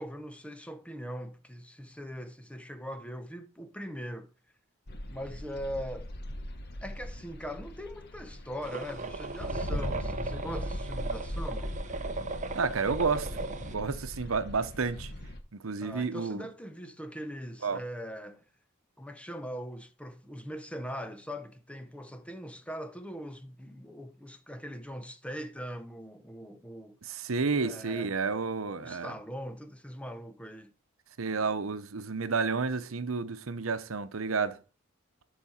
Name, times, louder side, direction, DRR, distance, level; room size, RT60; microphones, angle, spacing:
voice 1, 0.0-4.3 5.0-6.1 6.8-11.7 15.8-18.4 19.0-27.0 27.6-28.1 28.8-30.7, equal, 5° left, 0.8 m, -41 dB
sound 1, 4.9-15.4, left 1 dB, 50° left, 1.2 m, -39 dB
sound 2, 8.6-13.7, right 3 dB, 35° right, 0.8 m, -37 dB
voice 2, 12.5-15.1 15.5-16.5 17.6-17.8 27.0-29.1 31.2-34.6, right 4 dB, 90° right, 0.8 m, -31 dB
12.0 x 4.9 x 4.3 m
head